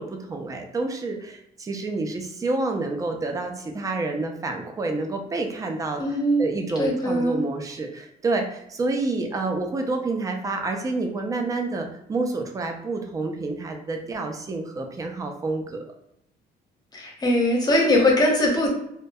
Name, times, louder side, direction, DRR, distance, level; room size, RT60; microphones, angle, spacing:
voice 1, 0.0-6.0 6.4-15.8, right 3 dB, 20° right, 4 dB, 0.4 m, -28 dB
voice 2, 6.0-6.5 6.8-7.4 16.9-18.7, left 1 dB, 25° left, -1 dB, 0.7 m, -21 dB
2.2 x 2.1 x 2.6 m, 0.78 s
cardioid pair, 110°, 17 cm